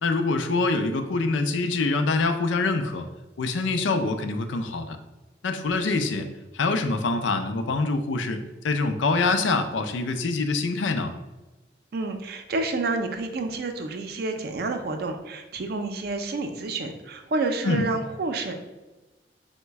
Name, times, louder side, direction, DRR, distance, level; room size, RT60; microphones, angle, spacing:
voice 1, 0.0-3.1 3.4-5.0 5.4-6.3 6.5-11.1 17.6-17.9, left 3 dB, 85° left, 8 dB, 0.4 m, -25 dB
voice 2, 11.9-18.5, right 3 dB, 55° right, 6 dB, 0.4 m, -29 dB
3.9 x 2.1 x 4.5 m, 1.1 s
head